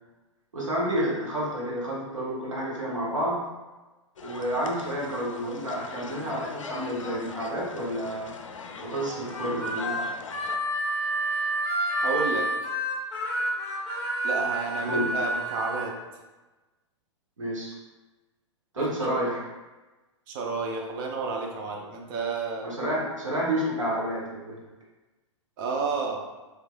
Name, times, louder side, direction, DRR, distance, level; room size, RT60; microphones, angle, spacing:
voice 1, 0.5-3.4 4.2-8.3 8.8-9.9 14.8-15.2 17.4-17.7 18.7-19.5 22.6-24.6, equal, 85° right, -5 dB, 1.0 m, -30 dB
sound 1, 4.2-10.6, left 4 dB, 85° left, 0.4 m, -41 dB
Harmonica, 9.3-15.9, right 1 dB, 5° left, 1.0 m, -29 dB
voice 2, 12.0-12.5 14.2-15.9 18.8-19.1 20.3-22.7 25.6-26.3, right 4 dB, 45° right, 1 dB, 0.7 m, -31 dB
3.3 x 3.1 x 2.3 m, 1.1 s
figure-of-eight pair, 110°, 16 cm